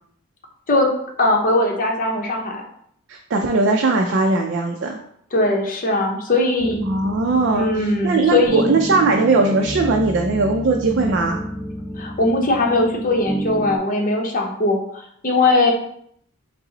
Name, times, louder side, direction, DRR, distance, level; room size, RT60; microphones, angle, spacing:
voice 1, 1.2-2.6 5.3-6.8 7.5-8.7 12.0-14.8 15.2-15.7, left 2 dB, 40° left, 1 dB, 0.7 m, -19 dB
voice 2, 3.1-5.0 6.8-11.4, right 3 dB, 55° right, 2 dB, 0.4 m, -19 dB
sound 1, 6.6-13.8, equal, ahead, 0.7 m, -30 dB
5.3 x 2.0 x 3.8 m, 0.68 s
head